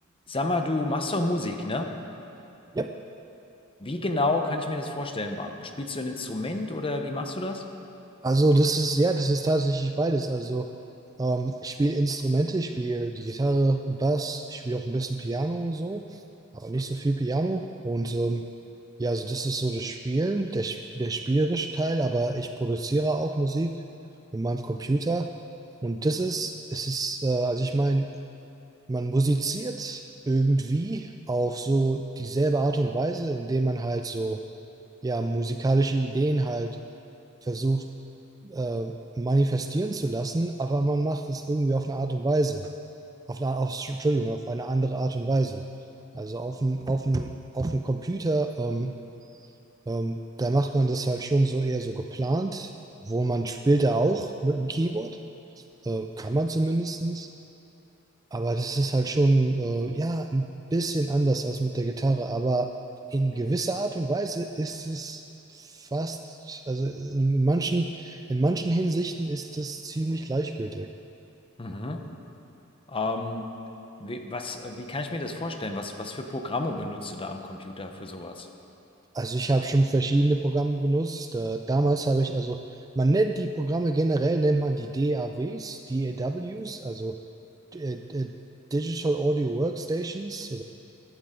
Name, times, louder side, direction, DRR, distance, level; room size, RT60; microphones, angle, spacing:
voice 1, 0.3-1.9 3.8-7.6 71.6-72.0 72.9-73.5 74.0-78.5, left 2 dB, 25° left, 5 dB, 0.9 m, -30 dB
voice 2, 8.2-10.7 11.2-16.2 16.5-18.5 19.0-23.8 24.3-25.3 25.8-28.1 28.9-34.4 35.0-36.8 37.4-37.9 38.4-42.7 43.3-45.6 46.1-48.9 49.9-52.7 53.1-55.2 55.6-57.3 58.3-62.7 63.1-65.2 65.5-70.9 79.1-87.2 87.7-88.3 88.7-90.6, right 2 dB, 15° right, 6 dB, 0.3 m, -26 dB
17.0 x 12.0 x 3.8 m, 2.8 s
head